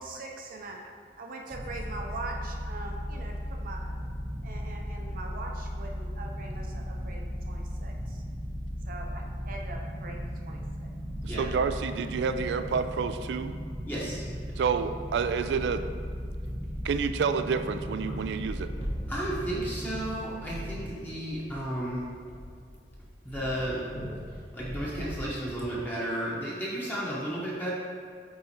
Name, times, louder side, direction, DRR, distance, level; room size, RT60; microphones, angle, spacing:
voice 1, 0.0-0.8 1.2-4.0 4.4-8.2 8.8-10.6, right 2 dB, 55° right, 1 dB, 0.7 m, -42 dB
sound 1, 1.5-20.2, equal, 15° right, 0.7 m, -36 dB
voice 2, 11.2-13.5 14.6-15.9 16.8-18.7, right 5 dB, 70° right, 10 dB, 0.3 m, -29 dB
voice 3, 13.9-14.2 14.5-14.7 19.1-22.0 23.2-23.8 24.5-27.7, right 1 dB, 10° left, -7 dB, 1.0 m, -33 dB
sound 2, 17.5-25.8, equal, 35° left, 1.1 m, -41 dB
8.6 x 3.8 x 2.9 m, 2.1 s
head